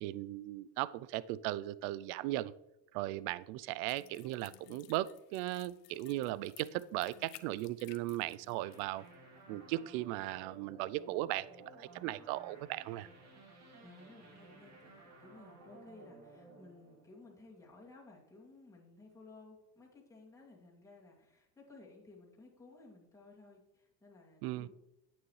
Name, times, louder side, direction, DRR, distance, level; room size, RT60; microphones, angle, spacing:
voice 1, 0.0-2.5 2.9-9.0 9.5-13.1 24.4-24.7, right 16 dB, 65° right, 19 dB, 0.5 m, -37 dB
sound 1, 3.9-8.8 9.1-9.2, left 15 dB, 80° left, 0.9 m, -57 dB
sound 2, 8.6-18.0, right 2 dB, 35° right, 2.6 m, -57 dB
voice 2, 13.8-24.7, left 3 dB, 5° left, -4 dB, 2.4 m, -57 dB
9.3 x 8.7 x 3.2 m, 0.90 s
supercardioid pair, 130°, 48 cm